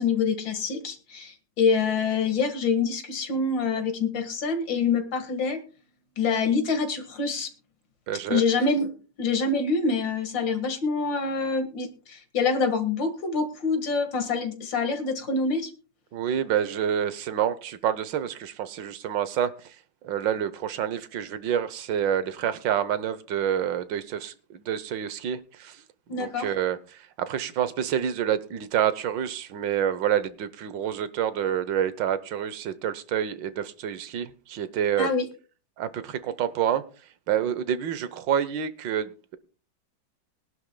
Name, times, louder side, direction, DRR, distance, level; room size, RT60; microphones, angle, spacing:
voice 1, 0.0-5.6 6.2-7.5 8.3-8.9 9.2-15.7 26.1-26.5 35.0-35.3, left 4 dB, 85° left, 7 dB, 2.4 m, -26 dB
voice 2, 8.1-8.4 16.1-25.8 26.1-35.1 35.8-36.8 37.3-39.4, right 9 dB, 85° right, 14 dB, 1.6 m, -28 dB
22.0 x 11.5 x 2.2 m, 0.36 s
omnidirectional pair, 2.0 m